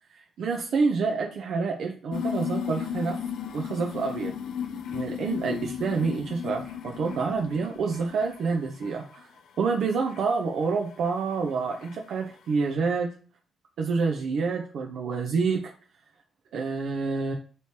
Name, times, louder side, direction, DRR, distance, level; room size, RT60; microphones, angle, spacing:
voice 1, 0.4-3.2 3.5-4.3 4.9-9.3 9.6-13.1 13.8-15.7 16.5-17.3, right 4 dB, 65° right, 1 dB, 0.4 m, -28 dB
sound 1, 2.1-8.5 8.8-9.4 10.1-10.2 11.1-11.2 11.7-11.9, left 8 dB, 65° left, 0.3 m, -34 dB
3.1 x 2.9 x 2.8 m, 0.38 s
hypercardioid pair, 45°, 0 cm